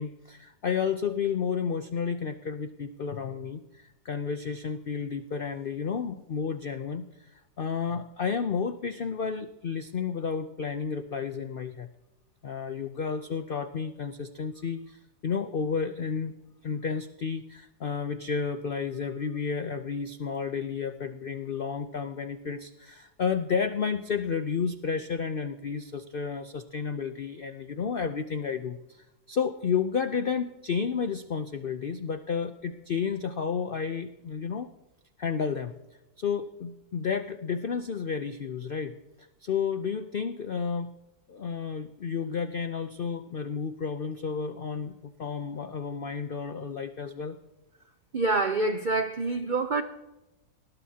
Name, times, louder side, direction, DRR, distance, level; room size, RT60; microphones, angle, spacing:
voice 1, 0.0-7.3 7.6-11.9 12.4-16.3 16.6-34.7 35.2-35.7 36.2-39.0 39.4-40.9 41.3-47.4, left 6 dB, 70° left, 0.5 m, -31 dB
voice 2, 48.1-49.8, right 3 dB, 70° right, 0.4 m, -26 dB
20.0 x 19.5 x 2.8 m
omnidirectional pair, 1.7 m